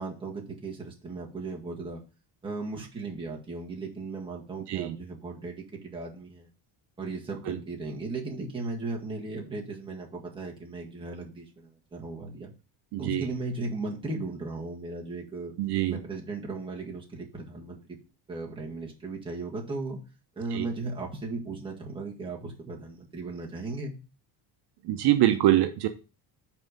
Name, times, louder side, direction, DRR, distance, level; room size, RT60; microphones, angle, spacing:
voice 1, 0.0-2.0 2.4-6.5 7.0-12.5 13.0-15.5 15.9-18.0 18.3-20.0 20.4-23.9, right 3 dB, 10° right, -2 dB, 1.8 m, -36 dB
voice 2, 12.9-13.2 15.6-16.0 20.5-20.7 24.8-25.9, right 13 dB, 65° right, 8 dB, 0.8 m, -24 dB
6.0 x 4.6 x 6.4 m, 0.32 s
cardioid pair, 170°, 43 cm